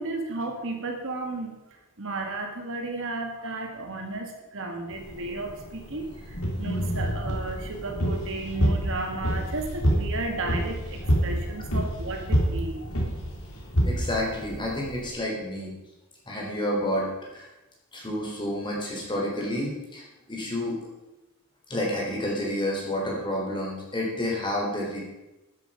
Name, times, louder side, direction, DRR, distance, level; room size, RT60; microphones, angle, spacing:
voice 1, 0.0-1.6 2.0-12.8, right 2 dB, 65° right, 3 dB, 2.0 m, -33 dB
sound 1, 4.9-15.1, equal, 70° left, 5.3 m, -45 dB
sound 2, 6.3-15.0, equal, 85° left, 3.6 m, -27 dB
voice 2, 13.8-15.8 16.3-17.5 17.9-20.8 21.7-25.0, left 1 dB, 20° left, -2 dB, 4.0 m, -30 dB
12.5 x 10.0 x 5.2 m, 1.0 s
head